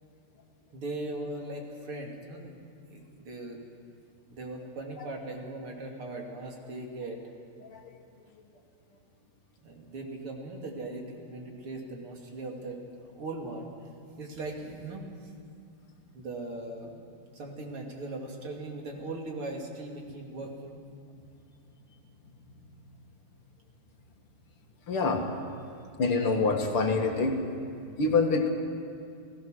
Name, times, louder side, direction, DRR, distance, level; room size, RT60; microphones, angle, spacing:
voice 1, 0.7-2.6 2.9-3.6 4.3-7.2 9.6-12.8 13.1-13.7 14.2-15.1 16.1-17.0 17.3-20.8, right 2 dB, 80° right, 1 dB, 3.5 m, -39 dB
voice 2, 24.9-25.2 26.0-27.4 28.0-28.5, left 3 dB, 80° left, 3 dB, 3.0 m, -25 dB
29.5 x 18.0 x 6.4 m, 2.4 s
omnidirectional pair, 2.3 m